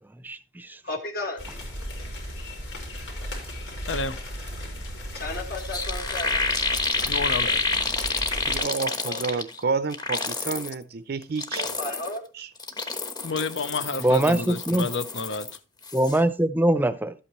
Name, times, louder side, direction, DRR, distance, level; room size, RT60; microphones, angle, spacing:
voice 1, 0.2-0.8 14.0-14.8 15.9-17.1, right 1 dB, 10° right, 0.6 m, -22 dB
voice 2, 0.8-1.4 5.1-6.5 9.1-9.2 11.6-12.2, left 2 dB, 55° left, 1.6 m, -33 dB
sound 1, 1.4-8.6, equal, 90° left, 4.3 m, -36 dB
voice 3, 3.9-4.2 7.0-7.6 13.2-15.6, left 4 dB, 70° left, 0.7 m, -30 dB
sound 2, 5.3-5.4 5.6-9.6 9.9-10.7 11.2-12.2 12.6-15.6 15.8-16.2, left 3 dB, 20° left, 1.1 m, -29 dB
voice 4, 8.4-11.7 12.3-12.5, right 4 dB, 55° right, 0.5 m, -30 dB
12.5 x 8.5 x 3.0 m
head